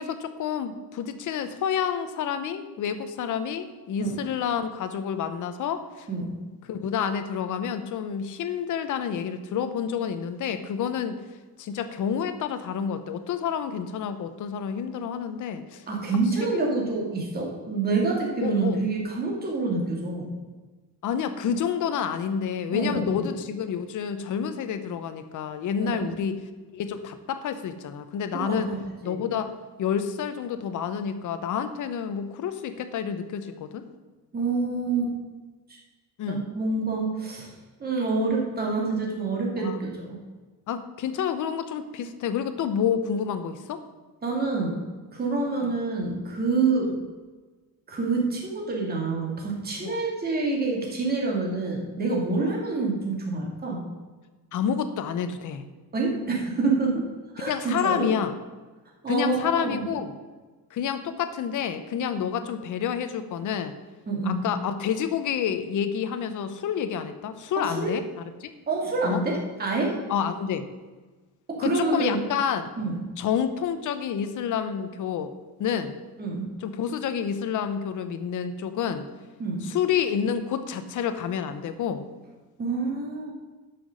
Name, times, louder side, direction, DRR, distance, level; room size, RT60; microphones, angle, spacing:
voice 1, 0.0-6.1 6.7-11.2 11.6-15.8 16.4-16.6 18.4-18.8 21.0-26.4 26.7-28.7 29.0-33.8 36.2-36.5 39.6-39.9 40.7-43.8 45.6-45.7 49.8-50.0 54.5-55.7 57.4-58.3 59.1-60.1 60.7-63.7 64.2-68.0 68.4-68.5 69.0-69.2 70.1-70.6 71.6-72.7 73.2-75.3 75.6-76.0 76.6-79.1 79.6-82.1, left 8 dB, 50° left, 10 dB, 0.9 m, -29 dB
voice 2, 15.9-20.4 22.7-23.2 25.8-26.0 28.3-28.8 29.0-29.2 34.3-35.1 35.7-35.8 36.3-37.5 37.8-40.2 44.2-44.8 45.1-46.9 47.9-53.8 55.9-57.0 57.3-58.1 59.0-59.8 64.1-64.4 67.6-67.9 68.7-70.0 71.5-72.2 72.8-73.0 76.2-76.5 79.4-79.7 82.6-83.3, right 3 dB, 25° right, -1 dB, 2.3 m, -27 dB
12.5 x 6.1 x 6.4 m, 1.3 s
cardioid pair, 175°, 39 cm